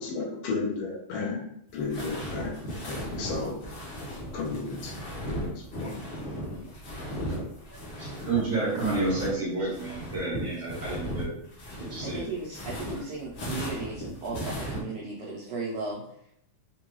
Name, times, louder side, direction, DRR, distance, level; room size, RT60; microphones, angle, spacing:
voice 1, 0.0-1.4 1.7-3.7 4.3-5.0 5.3-6.0, left 4 dB, 80° left, -1 dB, 1.3 m, -33 dB
sound 1, 1.7-9.3 9.6-14.8, equal, 60° left, 1.3 m, -36 dB
voice 2, 8.0-11.3 11.8-12.3, right 3 dB, 50° right, -7 dB, 1.6 m, -30 dB
voice 3, 12.0-16.0, right 3 dB, 75° right, -6 dB, 1.5 m, -36 dB
5.1 x 2.3 x 3.0 m, 0.72 s
omnidirectional pair, 3.4 m